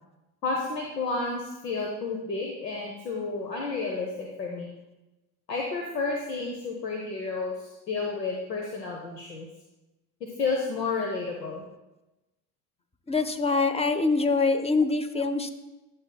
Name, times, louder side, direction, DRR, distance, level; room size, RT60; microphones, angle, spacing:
voice 1, 0.4-4.7 5.5-9.5 10.4-11.6, left 4 dB, 90° left, 0 dB, 1.0 m, -31 dB
voice 2, 13.1-15.6, left 3 dB, 15° left, 10 dB, 0.6 m, -24 dB
12.0 x 7.2 x 2.3 m, 0.99 s
hypercardioid pair, 70°, 48 cm